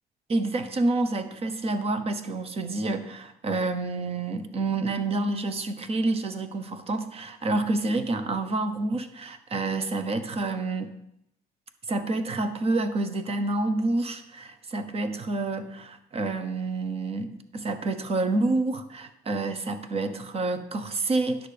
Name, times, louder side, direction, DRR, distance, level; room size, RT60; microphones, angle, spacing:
voice 1, 0.3-11.0 11.9-21.5, right 2 dB, 35° right, 10 dB, 1.1 m, -28 dB
10.0 x 6.6 x 5.1 m, 0.79 s
cardioid pair, 110°, 17 cm